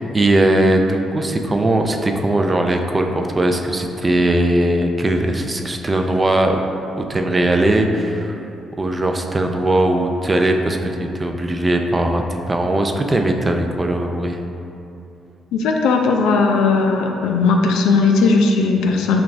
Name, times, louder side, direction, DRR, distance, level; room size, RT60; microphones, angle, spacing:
voice 1, 0.0-6.6 7.0-8.4 8.8-14.4, right 1 dB, 25° right, 4 dB, 0.3 m, -19 dB
voice 2, 15.5-19.2, left 4 dB, 90° left, 2 dB, 0.3 m, -17 dB
5.9 x 2.3 x 2.5 m, 2.7 s
cardioid pair, 90°, 0 cm